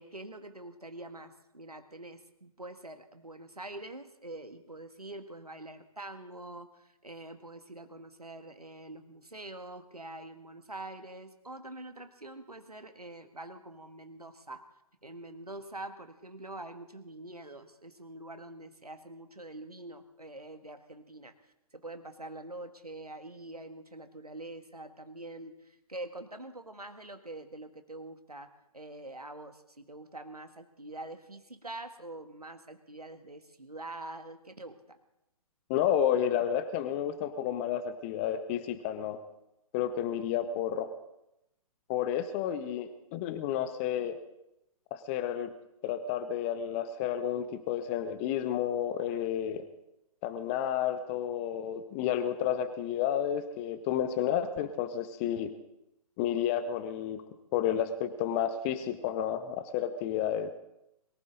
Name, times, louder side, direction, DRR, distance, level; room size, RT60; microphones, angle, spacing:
voice 1, 0.0-14.6 15.0-21.3 21.7-28.5 28.7-35.0, right 2 dB, 85° right, 8 dB, 1.6 m, -45 dB
voice 2, 35.7-39.2 39.7-40.9 41.9-44.2 44.9-45.5 45.8-49.6 50.2-55.5 56.2-57.2 57.5-60.5, left 10 dB, 20° left, 12 dB, 0.8 m, -31 dB
22.5 x 15.0 x 3.9 m, 0.86 s
figure-of-eight pair, 135°, 19 cm